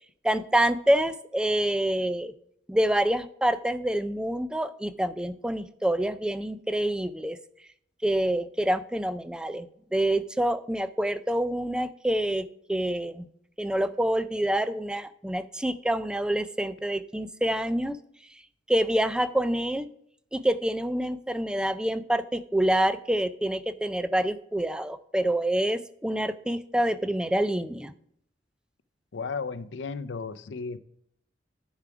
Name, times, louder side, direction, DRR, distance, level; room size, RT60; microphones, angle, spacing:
voice 1, 0.2-2.3 2.7-7.4 8.0-13.3 13.6-18.0 18.7-19.9 20.3-27.9, right 1 dB, 5° right, 13 dB, 0.3 m, -27 dB
voice 2, 29.1-30.8, left 4 dB, 70° left, 15 dB, 0.5 m, -34 dB
10.5 x 4.8 x 4.7 m, 0.70 s
head